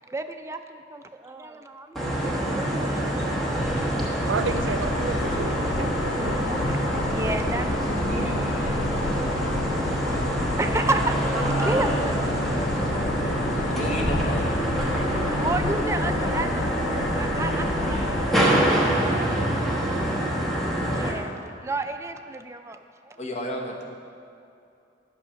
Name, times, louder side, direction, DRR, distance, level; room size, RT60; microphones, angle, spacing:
voice 1, 0.1-2.0 2.5-3.9 5.7-6.2 6.4-10.2 10.6-11.2 11.4-12.7 15.2-18.0 18.9-20.3 20.9-21.3 21.6-22.8 23.1-23.2, right 2 dB, 15° right, 7 dB, 0.3 m, -33 dB
sound 1, 2.0-21.1, right 1 dB, ahead, 1.0 m, -25 dB
voice 2, 4.3-6.4, right 4 dB, 75° right, 9 dB, 0.5 m, -31 dB
sound 2, 4.4-18.3, left 5 dB, 75° left, 0.3 m, -32 dB
voice 3, 13.4-14.6 23.2-23.8, equal, 35° left, 0 dB, 1.0 m, -33 dB
8.9 x 5.7 x 5.7 m, 2.6 s
head